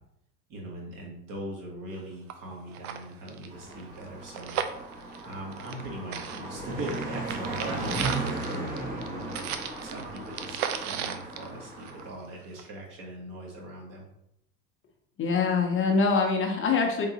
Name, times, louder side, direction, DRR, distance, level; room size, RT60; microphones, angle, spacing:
voice 1, 0.5-4.6 5.2-9.5 9.8-14.1, right 1 dB, 40° right, -2 dB, 1.6 m, -40 dB
sound 1, 1.9-2.0 2.3-2.4 2.7-5.9 6.1-12.2 12.6-12.7, right 9 dB, 65° right, 0.6 m, -35 dB
Car passing by, 3.5-12.1, right 2 dB, 15° right, 1.1 m, -36 dB
voice 2, 15.2-17.1, left 4 dB, 25° left, 2 dB, 0.8 m, -24 dB
3.8 x 3.7 x 2.9 m, 0.79 s
hypercardioid pair, 85°, 47 cm